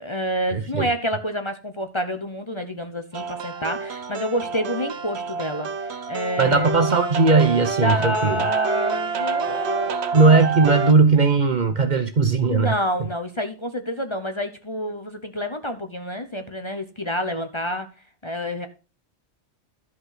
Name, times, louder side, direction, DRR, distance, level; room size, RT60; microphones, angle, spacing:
voice 1, 0.0-6.9 7.8-10.0 12.5-17.9 18.2-18.7, equal, 25° left, 0.9 m, -28 dB
voice 2, 0.5-0.9 6.4-8.4 10.1-12.7, right 4 dB, 45° right, 0.9 m, -18 dB
sound 1, 3.1-10.9, right 5 dB, 65° right, 1.1 m, -28 dB
12.5 x 5.5 x 5.8 m
omnidirectional pair, 1.2 m